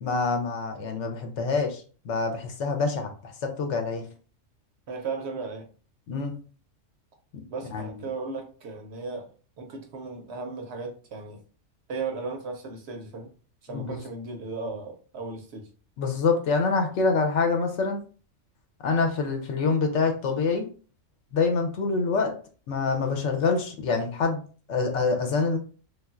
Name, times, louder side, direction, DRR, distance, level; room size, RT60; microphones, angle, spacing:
voice 1, 0.0-4.0 6.1-6.4 7.3-7.4 7.7-7.9 13.7-14.0 16.0-18.0 18.8-20.7 21.3-22.3 22.7-24.4 24.7-25.6, left 4 dB, 70° left, 0.9 m, -26 dB
voice 2, 4.9-5.7 7.5-9.3 9.6-11.4 11.9-13.3 13.6-15.7, right 4 dB, 65° right, 0.7 m, -36 dB
3.2 x 2.4 x 2.3 m
omnidirectional pair, 1.3 m